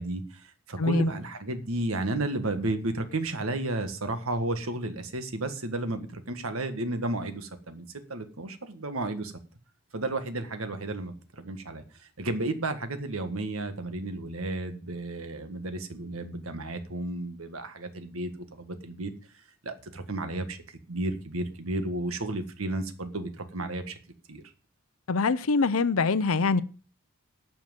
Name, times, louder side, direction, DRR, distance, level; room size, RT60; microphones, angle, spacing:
voice 1, 0.0-9.3 9.9-19.1 19.6-24.0 24.3-24.4, right 2 dB, 85° right, 1.7 m, -33 dB
voice 2, 0.8-1.1 25.1-26.6, left 4 dB, 85° left, 0.7 m, -24 dB
12.5 x 6.0 x 7.6 m
head